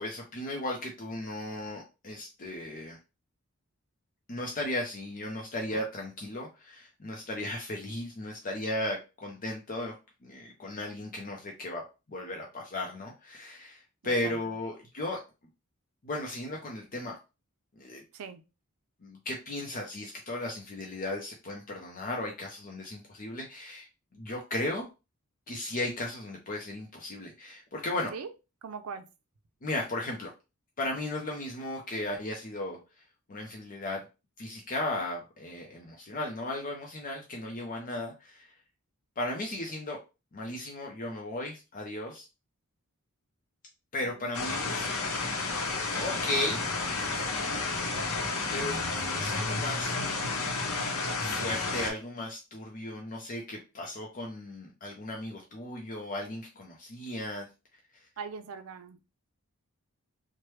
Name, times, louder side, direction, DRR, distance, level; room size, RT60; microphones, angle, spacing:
voice 1, 0.0-3.0 4.3-9.9 10.2-11.8 12.1-15.2 16.0-17.2 17.8-18.0 19.0-23.9 24.1-24.8 25.5-28.1 29.6-30.3 30.8-32.8 33.3-34.0 34.4-38.5 39.2-40.0 40.3-42.2 43.9-44.8 45.8-46.6 47.2-48.1 48.5-49.9 51.2-57.5, left 1 dB, 40° left, 0.6 m, -36 dB
voice 2, 14.0-14.6 18.1-18.4 28.1-28.3 28.6-29.1 44.0-44.3 58.2-59.0, right 5 dB, 70° right, 0.5 m, -41 dB
sound 1, 44.3-51.9, left 3 dB, 85° left, 0.7 m, -31 dB
3.1 x 2.1 x 3.1 m
head